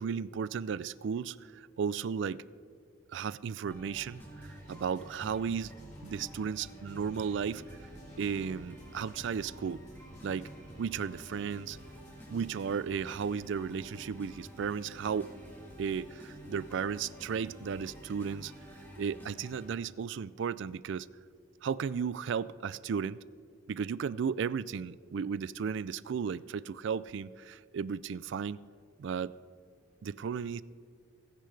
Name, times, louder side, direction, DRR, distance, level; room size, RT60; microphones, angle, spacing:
voice 1, 0.0-2.4 3.1-5.7 6.0-7.9 8.2-9.8 10.2-10.5 10.8-11.8 12.3-15.3 15.8-18.5 19.0-21.1 21.6-23.2 23.7-28.6 29.0-29.3 30.0-30.6, right 6 dB, 60° right, 18 dB, 0.3 m, -34 dB
sound 1, 3.7-19.7, equal, 10° left, 2.4 m, -50 dB
sound 2, 4.1-12.9, equal, 35° left, 4.5 m, -55 dB
sound 3, 7.5-18.9, right 1 dB, 35° right, 1.5 m, -58 dB
29.5 x 10.5 x 3.3 m, 2.1 s
head